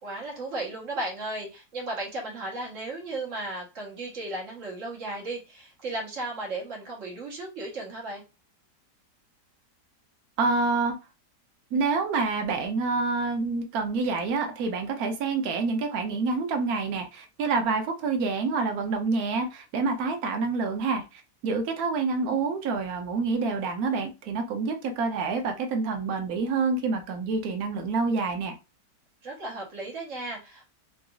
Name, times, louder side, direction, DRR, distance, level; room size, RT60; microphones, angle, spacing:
voice 1, 0.0-8.2 29.2-30.7, right 2 dB, 50° right, -2 dB, 1.4 m, -35 dB
voice 2, 10.4-10.9 11.7-28.6, right 4 dB, 65° right, 5 dB, 1.1 m, -27 dB
3.9 x 2.4 x 2.4 m, 0.27 s
omnidirectional pair, 1.8 m